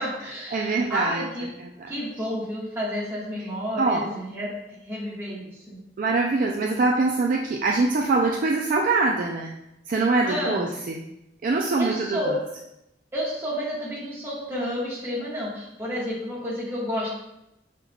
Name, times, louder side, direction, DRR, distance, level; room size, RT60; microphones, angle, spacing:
voice 1, 0.0-1.5 1.9-5.8 10.2-10.6 11.8-12.3 13.1-17.1, equal, 15° right, -7 dB, 1.5 m, -30 dB
voice 2, 0.5-1.3 1.6-1.7 3.8-4.0 6.0-9.5 9.9-11.0 11.4-12.2, right 3 dB, 50° right, 0 dB, 0.4 m, -23 dB
5.9 x 3.6 x 2.3 m, 0.86 s
head